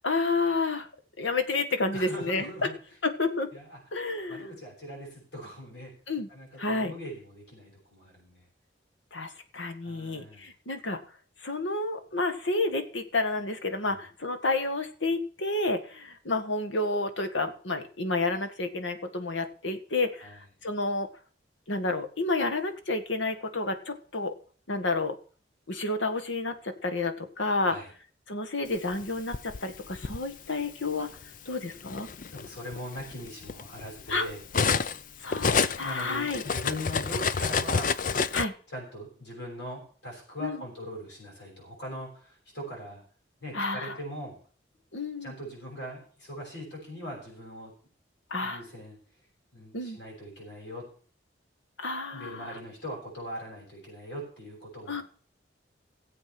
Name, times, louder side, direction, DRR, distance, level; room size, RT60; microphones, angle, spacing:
voice 1, 0.0-0.9 1.2-2.5 3.0-3.5 3.9-4.5 6.1-6.3 6.6-6.9 9.1-11.0 11.4-20.3 20.6-21.1 21.7-24.3 24.7-25.1 25.7-27.8 28.3-31.1 31.5-32.1 34.1-34.2 35.2-36.4 38.3-38.5 40.4-40.6 43.5-44.0 44.9-45.3 48.3-48.6 49.7-50.0 51.8-52.5 54.9-55.0, left 3 dB, 85° left, 7 dB, 1.7 m, -30 dB
voice 2, 1.9-2.7 3.5-3.8 4.3-5.9 6.3-8.4 9.8-10.5 13.8-14.1 20.2-20.4 27.6-27.9 32.3-34.4 35.7-37.9 38.7-43.0 43.4-44.4 45.2-47.7 48.4-49.0 49.5-50.8 52.1-55.0, equal, 70° left, -2 dB, 6.5 m, -40 dB
Cutlery silverware, 28.9-30.2 31.2-31.4 31.8-35.0 35.3-38.4, left 5 dB, 45° left, 0.5 m, -29 dB
16.0 x 7.9 x 6.0 m, 0.42 s
head